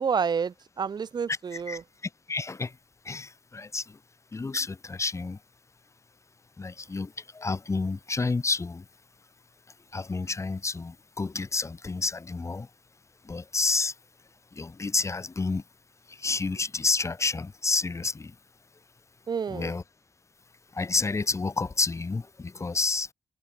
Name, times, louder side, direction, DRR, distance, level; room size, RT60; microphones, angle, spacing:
voice 1, 0.0-1.8 19.3-19.7, right 6 dB, 55° right, 1.4 m, -29 dB
voice 2, 2.3-2.7 3.0-4.0 4.3-5.4 6.6-8.8 9.9-12.7 13.2-13.9 14.5-15.6 16.1-18.3 19.5-19.8 20.7-23.1, left 3 dB, 35° left, 3.0 m, -29 dB
cardioid pair, 65°, 8 cm